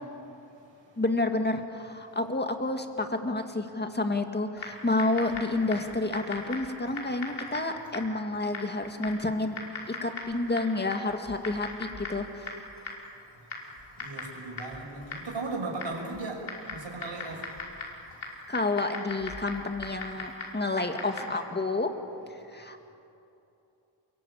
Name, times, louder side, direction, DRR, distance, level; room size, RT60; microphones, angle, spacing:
voice 1, 0.2-1.0 12.8-18.5 22.4-22.5, right 3 dB, 65° right, 0 dB, 6.0 m, -39 dB
voice 2, 1.0-9.6 9.9-12.5 18.5-21.9 22.5-22.9, left 2 dB, 20° left, 5 dB, 2.1 m, -30 dB
Typing, 4.6-21.5, left 3 dB, 75° left, 5.5 m, -41 dB
28.5 x 22.5 x 8.7 m, 2.8 s
wide cardioid pair, 125°, 48 cm